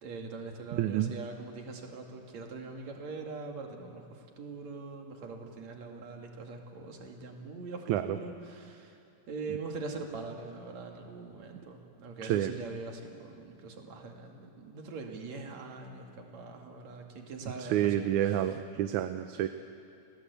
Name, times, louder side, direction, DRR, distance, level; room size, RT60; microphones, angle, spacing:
voice 1, 0.0-9.0 9.3-18.3, right 3 dB, 60° right, 2 dB, 3.5 m, -42 dB
voice 2, 0.7-1.1 7.9-8.2 12.2-12.5 17.6-19.5, right 12 dB, 80° right, 9 dB, 2.1 m, -29 dB
29.5 x 19.0 x 8.3 m, 2.8 s
omnidirectional pair, 3.5 m